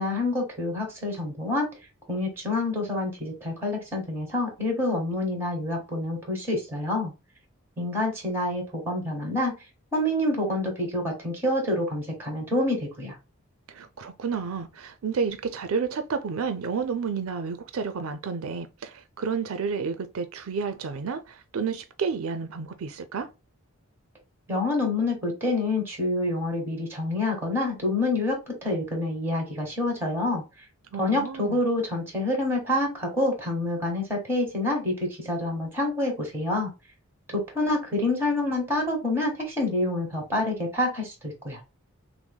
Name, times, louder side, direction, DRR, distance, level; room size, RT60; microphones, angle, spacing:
voice 1, 0.0-1.7 2.1-7.1 7.8-9.5 9.9-13.1 24.5-30.4 31.0-36.7 37.3-41.6, left 2 dB, 10° right, 1.7 m, -27 dB
voice 2, 13.7-23.3 30.9-31.6, right 5 dB, 70° right, 0.4 m, -31 dB
5.9 x 2.0 x 2.2 m
head